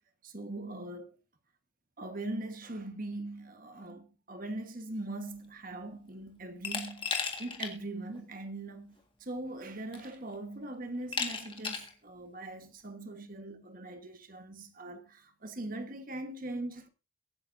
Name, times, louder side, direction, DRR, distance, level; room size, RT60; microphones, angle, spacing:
voice 1, 0.2-1.2 2.0-7.1 7.4-16.9, right 2 dB, 40° right, 1.4 m, -41 dB
Glass, 6.6-7.7 8.1-8.2 9.4-9.5 9.9-10.3 11.1-11.9, left 5 dB, 25° left, 1.8 m, -35 dB
23.0 x 9.3 x 2.7 m
head